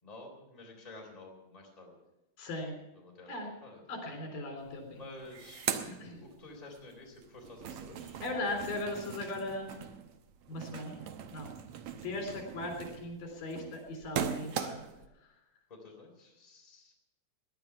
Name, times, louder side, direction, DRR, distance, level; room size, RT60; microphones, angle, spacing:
voice 1, 0.0-2.0 2.9-3.8 4.9-5.8 6.2-8.2 15.7-16.9, left 2 dB, 10° left, 0 dB, 3.3 m, -51 dB
voice 2, 2.4-2.7 3.3-3.5 3.9-5.0 5.9-6.2 8.2-9.7 10.5-11.5 12.0-14.8, left 2 dB, 75° left, 2 dB, 5.2 m, -38 dB
sound 1, 4.7-4.8 5.0-6.8 7.2-15.1, right 8 dB, 75° right, 1.4 m, -40 dB
19.5 x 10.5 x 5.9 m, 0.98 s
omnidirectional pair, 3.9 m